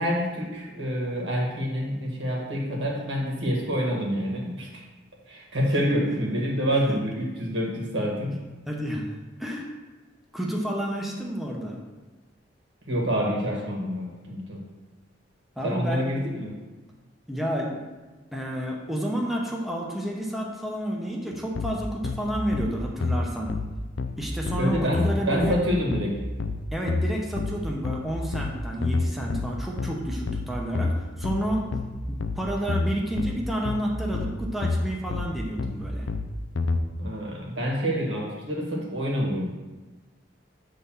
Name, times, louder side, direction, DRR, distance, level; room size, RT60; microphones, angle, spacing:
voice 1, 0.0-4.8 5.3-8.4 12.9-14.6 15.6-16.5 24.6-25.0 25.3-26.2 37.0-39.6, equal, 75° right, -2 dB, 1.8 m, -27 dB
voice 2, 8.7-9.1 9.4-9.7 10.3-11.8 15.6-16.1 17.3-17.8 18.3-23.5 24.2-25.6 26.7-31.7 32.1-36.1, equal, ahead, -2 dB, 0.8 m, -30 dB
sound 1, 21.6-36.8, left 3 dB, 85° left, 0.5 m, -29 dB
7.4 x 3.8 x 5.6 m, 1.2 s
head